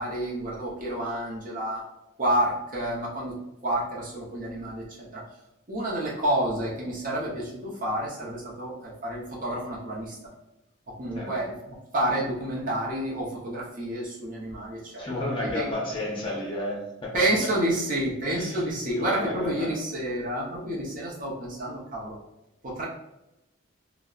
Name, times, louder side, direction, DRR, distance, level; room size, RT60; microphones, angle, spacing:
voice 1, 0.0-1.8 2.2-3.3 3.6-5.2 5.7-10.2 10.9-15.7 17.1-22.2 22.6-22.9, right 1 dB, 40° right, -4 dB, 0.6 m, -29 dB
voice 2, 15.0-17.1 18.3-18.6 18.9-19.7, left 1 dB, 25° left, -4 dB, 0.6 m, -31 dB
2.6 x 2.1 x 2.3 m, 0.93 s
head